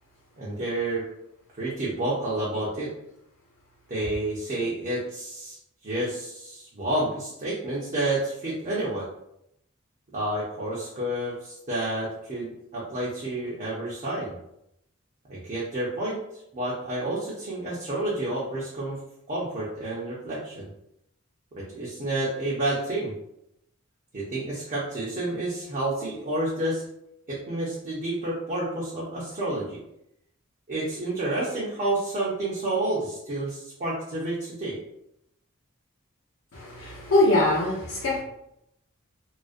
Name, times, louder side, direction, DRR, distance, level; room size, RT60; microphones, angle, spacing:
voice 1, 0.4-1.0 1.5-2.9 3.9-5.6 5.8-9.1 10.1-14.4 15.3-16.2 16.5-19.0 19.3-20.7 21.6-23.1 24.1-26.8 27.3-29.8 30.7-34.8, right 1 dB, 35° right, -6 dB, 0.5 m, -29 dB
voice 2, 36.5-38.2, left 2 dB, 80° left, -9 dB, 0.7 m, -23 dB
2.4 x 2.1 x 2.4 m, 0.79 s
head